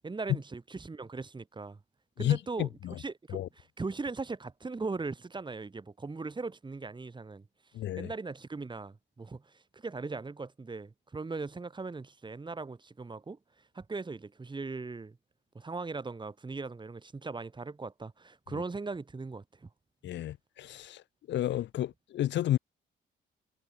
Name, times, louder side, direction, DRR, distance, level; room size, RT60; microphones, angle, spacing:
voice 1, 0.0-1.8 2.2-2.7 3.0-7.5 8.0-13.4 13.7-15.2 15.5-19.7, right 3 dB, 25° right, 2.4 m, -39 dB
voice 2, 2.2-2.9 3.3-3.5 7.7-8.1 20.0-21.0 21.3-22.6, left 12 dB, 65° left, 0.7 m, -31 dB
cardioid pair, 90°, 20 cm